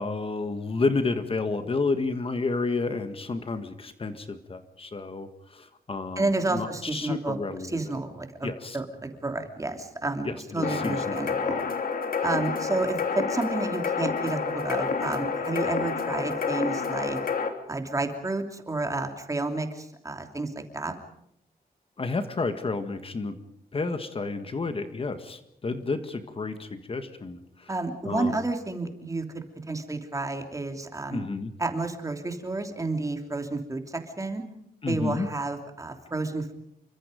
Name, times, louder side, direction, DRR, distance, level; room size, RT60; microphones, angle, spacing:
voice 1, 0.0-8.0 8.4-8.8 10.2-11.2 22.0-23.4 23.7-27.7 28.0-28.4 31.1-31.5 34.8-35.3, left 3 dB, 35° left, 8 dB, 1.7 m, -31 dB
voice 2, 6.2-11.6 12.2-17.2 17.7-21.0 27.7-31.2 31.6-34.4 34.9-36.5, right 2 dB, 20° right, 5 dB, 3.0 m, -31 dB
sound 1, 10.6-17.5, left 5 dB, 65° left, 3.0 m, -29 dB
29.0 x 24.5 x 5.2 m, 0.77 s
wide cardioid pair, 135°, 16 cm